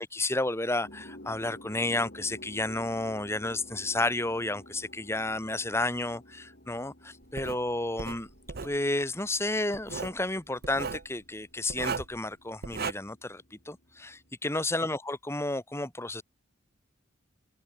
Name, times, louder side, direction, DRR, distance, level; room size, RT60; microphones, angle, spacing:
voice 1, 0.0-8.3 8.6-16.2, left 2 dB, 10° left, 1.7 m, -31 dB
sound 1, 0.8-14.4, left 1 dB, 50° left, 5.8 m, -52 dB
Writing, 7.4-7.6 8.0-8.8 9.7-10.2 10.6-11.1 11.7-12.2 12.6-12.9, right 5 dB, 50° right, 0.7 m, -35 dB
head